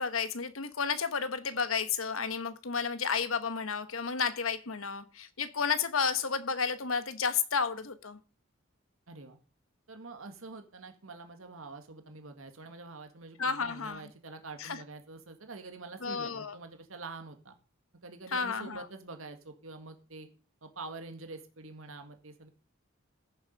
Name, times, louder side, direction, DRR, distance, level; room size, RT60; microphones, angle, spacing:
voice 1, 0.0-8.2 13.4-14.1 14.6-14.8 16.0-16.5 18.3-18.8, left 5 dB, 80° left, 1.2 m, -32 dB
voice 2, 9.1-9.4 9.9-17.6 18.0-20.3 20.6-22.5, right 3 dB, 80° right, 1.8 m, -46 dB
15.0 x 7.2 x 5.3 m
head